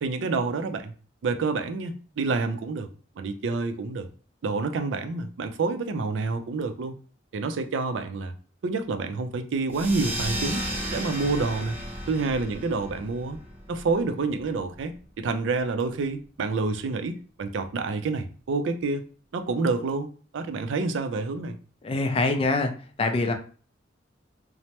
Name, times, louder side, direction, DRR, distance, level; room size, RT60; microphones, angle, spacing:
voice 1, 0.0-0.9 1.2-2.9 3.2-4.1 4.4-6.9 7.3-8.3 8.6-10.6 10.9-11.7 12.1-13.4 13.7-19.0 19.3-20.1 20.3-21.6, right 3 dB, 75° right, 0.4 m, -28 dB
sound 1, 9.7-14.8, right 1 dB, 10° right, 0.6 m, -34 dB
voice 2, 21.8-22.7 23.0-23.3, left 3 dB, 30° left, 0.4 m, -24 dB
3.1 x 2.0 x 2.8 m
head